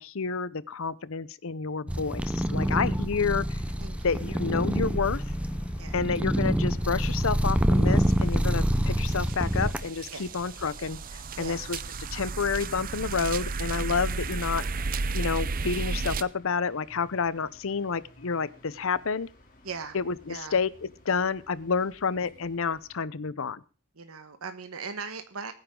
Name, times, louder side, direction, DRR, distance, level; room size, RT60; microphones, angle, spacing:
voice 1, 0.0-3.6 4.0-5.2 5.9-11.0 11.4-11.8 12.1-14.6 15.1-19.3 19.9-20.7 21.1-23.6, left 5 dB, 65° left, 18 dB, 0.7 m, -29 dB
sound 1, 1.9-9.9, equal, 5° right, 0.7 m, -26 dB
sound 2, 3.3-23.0, equal, 40° left, 3.1 m, -53 dB
voice 2, 3.8-4.2 5.8-6.0 10.1-10.3 11.3-11.6 19.6-20.0 20.3-20.6 23.9-25.5, right 5 dB, 75° right, 8 dB, 1.4 m, -39 dB
sound 3, 8.0-8.1 8.5-16.2, right 4 dB, 40° right, 0.6 m, -33 dB
22.0 x 9.8 x 3.8 m, 0.35 s
head